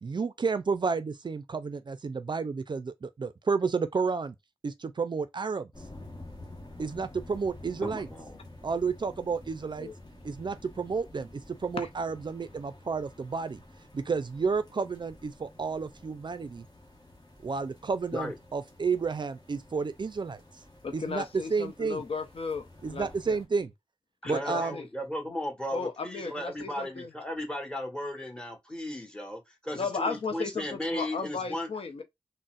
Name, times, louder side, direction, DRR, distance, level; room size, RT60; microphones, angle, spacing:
voice 1, 0.0-4.3 4.6-5.7 6.8-8.1 8.6-9.9 10.2-13.6 13.9-16.6 17.4-20.4 20.9-22.0 22.8-23.7 24.2-24.7, right 5 dB, 50° right, 0.4 m, -31 dB
sound 1, 5.7-23.5, left 1 dB, 45° left, 1.0 m, -50 dB
voice 2, 7.8-8.4 18.1-18.3 24.2-31.7, left 1 dB, 10° left, 1.2 m, -36 dB
voice 3, 20.8-23.4 24.2-24.9 25.7-27.1 29.7-32.0, left 4 dB, 75° left, 0.6 m, -35 dB
3.9 x 2.1 x 2.3 m
cardioid pair, 45°, 10 cm